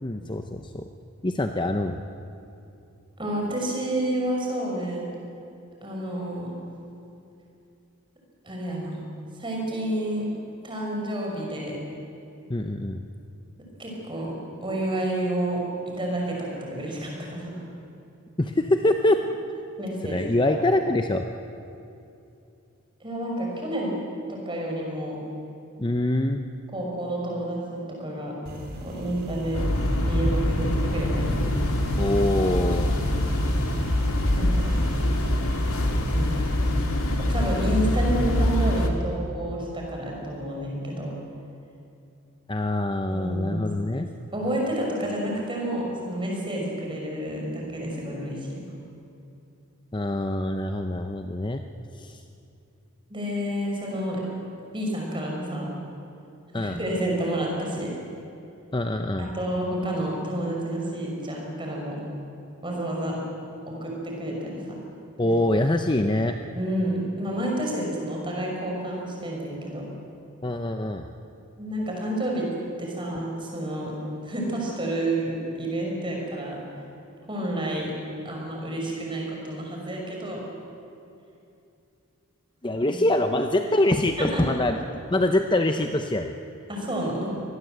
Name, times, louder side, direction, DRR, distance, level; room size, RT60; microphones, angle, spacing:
voice 1, 0.0-0.8 1.2-2.0 12.5-13.0 18.4-19.2 20.0-21.2 25.8-26.4 32.0-32.9 42.5-44.1 49.9-51.6 51.9-52.2 56.5-56.8 58.7-59.3 65.2-66.3 70.4-71.1 82.6-84.8 85.1-86.4, left 1 dB, 20° left, 6 dB, 0.7 m, -24 dB
voice 2, 3.2-5.1 5.8-6.5 8.4-9.0 9.4-10.3 10.6-11.8 13.8-14.3 14.6-17.6 19.8-20.2 23.0-23.9 24.3-25.2 26.7-28.4 28.8-29.7 30.0-31.4 34.3-34.8 36.1-36.5 37.3-41.1 43.1-43.6 44.3-48.6 53.1-54.2 54.7-55.7 56.6-57.9 59.2-62.0 62.6-63.2 63.7-64.8 65.2-65.4 66.5-69.9 71.6-72.5 72.8-73.9 74.2-76.6 77.3-77.9 78.2-80.4 82.9-83.0 84.2-84.6 86.7-87.3, right 1 dB, 20° right, -1 dB, 5.8 m, -29 dB
sound 1, 28.5-38.9, equal, 45° right, 4.3 m, -36 dB
sound 2, 29.5-38.9, left 1 dB, 75° left, 2.2 m, -24 dB
25.0 x 19.5 x 8.1 m, 2.7 s
head